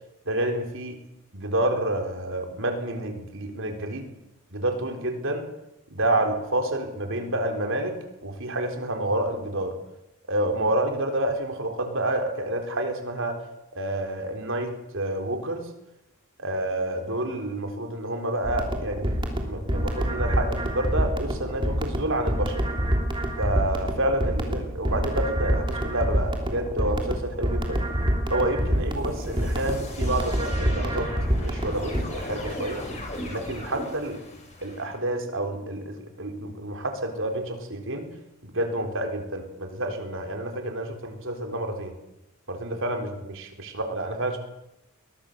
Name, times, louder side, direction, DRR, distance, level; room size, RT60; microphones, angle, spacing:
voice 1, 0.3-1.0 1.3-4.1 4.5-5.5 5.9-7.9 8.2-9.7 10.3-13.4 13.8-15.7 16.4-19.1 19.4-22.6 23.4-27.8 28.3-31.1 31.4-32.8 33.3-34.2 34.6-38.1 38.4-41.9 42.5-44.4, right 1 dB, 65° right, 4 dB, 4.0 m, -29 dB
sound 1, 18.4-32.0, equal, 25° right, 3.3 m, -27 dB
sound 2, 27.9-34.9, left 1 dB, 35° left, 6.8 m, -38 dB
22.0 x 20.5 x 6.8 m, 0.87 s
head